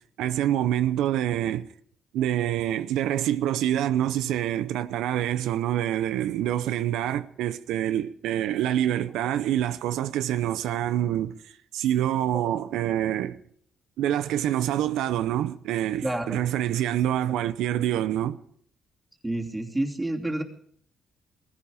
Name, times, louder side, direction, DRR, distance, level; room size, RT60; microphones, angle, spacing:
voice 1, 0.2-1.7 2.1-13.4 14.0-18.4, right 11 dB, 90° right, 0.7 m, -26 dB
voice 2, 16.0-16.4 19.2-20.4, right 1 dB, 10° right, 2.9 m, -29 dB
19.0 x 15.0 x 4.9 m
cardioid pair, 90°, 0 cm